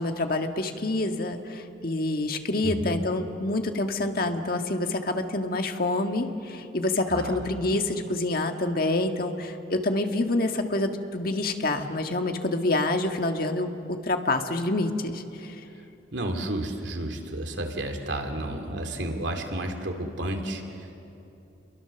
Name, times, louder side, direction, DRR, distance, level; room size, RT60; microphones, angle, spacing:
voice 1, 0.0-15.5, left 2 dB, 50° left, 5 dB, 1.6 m, -27 dB
voice 2, 2.6-3.0 7.1-7.4 16.1-21.0, right 1 dB, 75° right, 4 dB, 2.8 m, -31 dB
29.5 x 22.5 x 7.0 m, 2.8 s
head